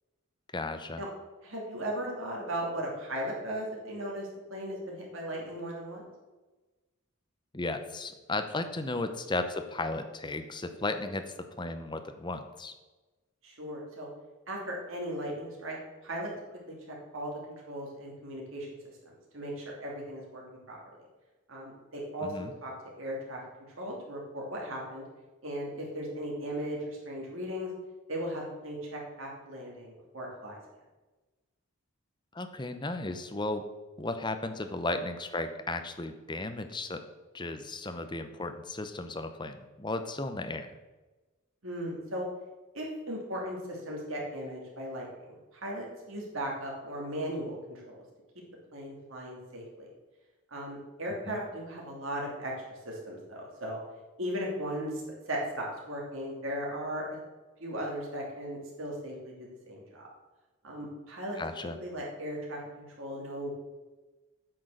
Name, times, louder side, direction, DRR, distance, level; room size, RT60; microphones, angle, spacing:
voice 1, 0.5-1.0 7.5-12.7 22.2-22.5 32.3-33.6 34.0-37.0 37.3-40.7 51.3-51.4 61.4-61.8, left 2 dB, 20° left, 8 dB, 0.7 m, -35 dB
voice 2, 1.4-6.0 13.4-14.1 14.5-15.8 16.0-16.3 16.7-16.8 17.1-17.3 17.7-18.7 19.0-20.4 20.7-20.8 21.5-22.3 22.6-22.7 23.0-23.4 23.8-25.0 25.4-27.7 28.1-30.6 41.6-42.3 42.7-48.0 48.7-49.9 50.5-53.8 54.2-57.2 57.6-60.1 60.6-61.4 61.8-63.5, equal, 70° right, -2 dB, 2.8 m, -37 dB
8.8 x 6.2 x 6.4 m, 1.2 s
head